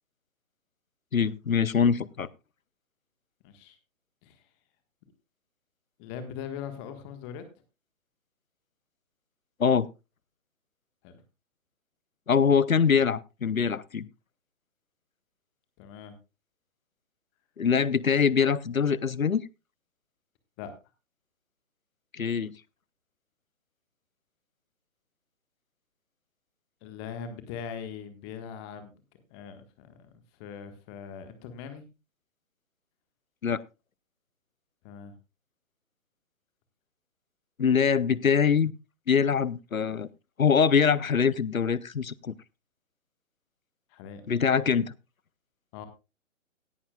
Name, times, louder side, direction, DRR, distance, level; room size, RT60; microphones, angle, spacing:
voice 1, 1.1-2.3 9.6-9.9 12.3-14.1 17.6-19.4 22.1-22.5 33.4-33.6 37.6-38.7 39.1-40.1 40.4-42.3 44.3-44.9, left 6 dB, 85° left, 21 dB, 0.8 m, -23 dB
voice 2, 3.4-3.8 4.2-4.3 6.0-7.4 11.0-11.2 15.8-16.1 20.6-20.7 26.8-28.9 29.3-30.1 30.4-31.8 34.8-35.1 43.9-44.2 45.7-45.9, left 7 dB, 20° left, 9 dB, 1.5 m, -41 dB
17.0 x 11.0 x 2.3 m, 0.27 s
figure-of-eight pair, 135°, 40 cm